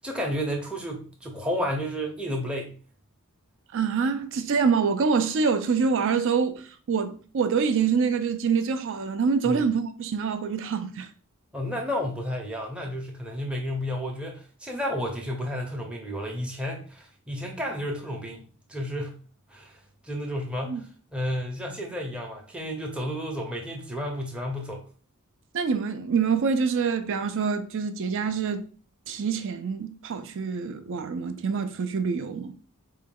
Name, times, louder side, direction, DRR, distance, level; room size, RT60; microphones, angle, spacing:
voice 1, 0.0-2.8 9.4-9.7 11.5-18.4 18.7-19.2 19.5-19.7 20.0-20.9 21.1-24.8, equal, 5° right, 0.6 m, -31 dB
voice 2, 3.7-11.1 20.6-20.8 25.5-28.6 29.1-32.5, right 5 dB, 60° right, 0.4 m, -26 dB
3.8 x 2.2 x 3.7 m
head